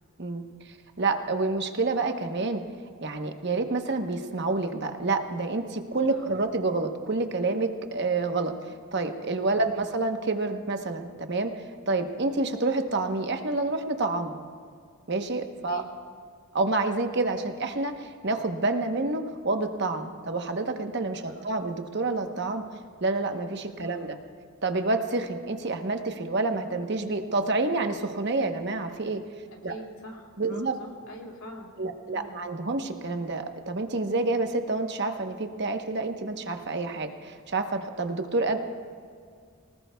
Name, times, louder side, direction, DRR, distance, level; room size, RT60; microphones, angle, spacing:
voice 1, 0.2-2.6 3.0-14.4 15.1-15.8 16.5-22.6 23.0-24.2 24.6-29.2 29.6-29.7 30.4-30.7 31.8-38.6, right 3 dB, 50° right, 6 dB, 1.0 m, -28 dB
voice 2, 6.1-6.4 15.7-15.9 21.2-21.5 23.8-24.1 29.5-31.7 32.0-32.4, equal, 65° left, 0 dB, 2.5 m, -44 dB
24.0 x 19.0 x 2.3 m, 2.1 s
head